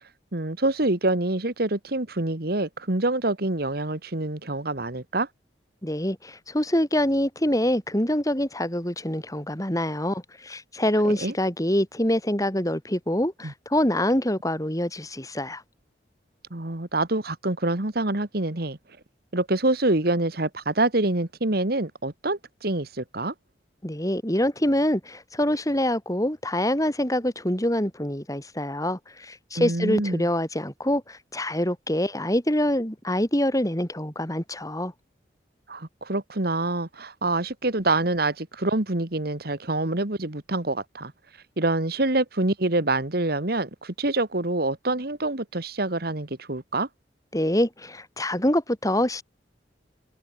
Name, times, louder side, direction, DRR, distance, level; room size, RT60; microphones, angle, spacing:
voice 1, 0.3-5.3 11.0-11.3 13.4-13.5 16.5-18.8 19.3-23.3 29.6-30.3 35.7-41.1 41.6-46.9, right 2 dB, 60° right, 2.0 m, -26 dB
voice 2, 5.8-15.6 23.8-34.9 47.3-49.2, left 1 dB, 20° left, 5.3 m, -25 dB
head